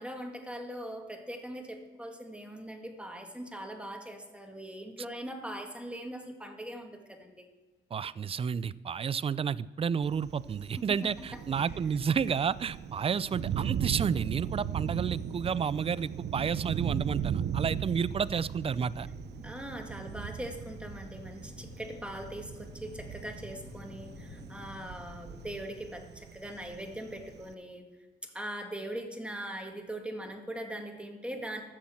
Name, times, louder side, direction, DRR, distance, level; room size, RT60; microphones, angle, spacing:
voice 1, 0.0-7.5 10.8-11.4 19.4-27.9 28.2-31.6, right 1 dB, 5° right, 3 dB, 1.9 m, -41 dB
voice 2, 7.9-19.1, right 6 dB, 30° right, 18 dB, 0.4 m, -31 dB
Thunder, 10.0-27.5, right 9 dB, 60° right, 0.7 m, -37 dB
sound 1, 19.1-25.5, left 3 dB, 30° left, 2.5 m, -50 dB
13.0 x 7.2 x 7.7 m, 1.2 s
cardioid pair, 90°, 20 cm